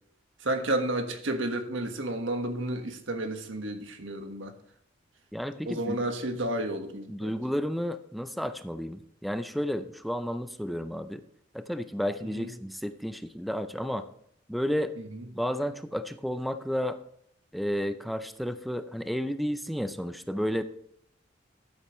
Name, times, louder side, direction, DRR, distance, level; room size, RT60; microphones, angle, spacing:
voice 1, 0.4-4.5 5.6-7.3 12.3-12.5 15.0-15.2, right 1 dB, 80° right, 5 dB, 1.5 m, -31 dB
voice 2, 5.3-6.1 7.1-11.2 11.5-14.1 14.5-14.9 15.3-17.0 17.5-20.6, equal, ahead, 10 dB, 0.5 m, -32 dB
13.0 x 8.5 x 3.1 m, 0.70 s
head